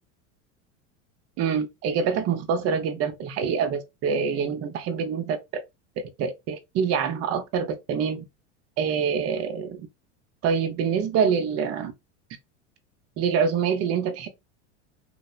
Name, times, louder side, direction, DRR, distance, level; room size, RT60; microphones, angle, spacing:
voice 1, 1.4-5.6 6.2-8.2 8.8-9.9 10.4-11.9 13.2-14.3, right 6 dB, 40° right, 0.6 m, -25 dB
3.2 x 2.0 x 2.3 m
hypercardioid pair, 95°, 37 cm